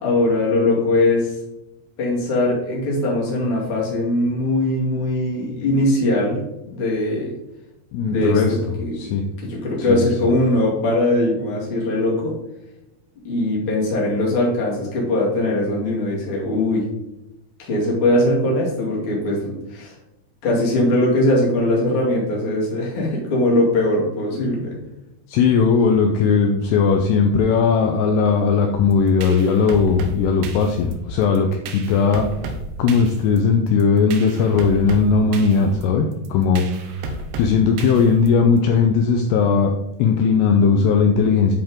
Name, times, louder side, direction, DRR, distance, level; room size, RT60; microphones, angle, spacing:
voice 1, 0.0-1.3 2.0-6.4 6.7-7.3 8.0-9.0 9.4-12.3 13.2-16.8 17.6-19.9 20.4-24.7, left 1 dB, 40° left, -3 dB, 2.4 m, -20 dB
voice 2, 7.9-8.6 9.0-9.2 9.9-10.0 25.3-32.3 32.8-39.7 40.0-41.5, left 5 dB, 80° left, 3 dB, 2.6 m, -18 dB
sound 1, 28.9-38.6, right 3 dB, 80° right, 2.9 m, -33 dB
10.5 x 4.4 x 3.7 m, 0.93 s
omnidirectional pair, 5.1 m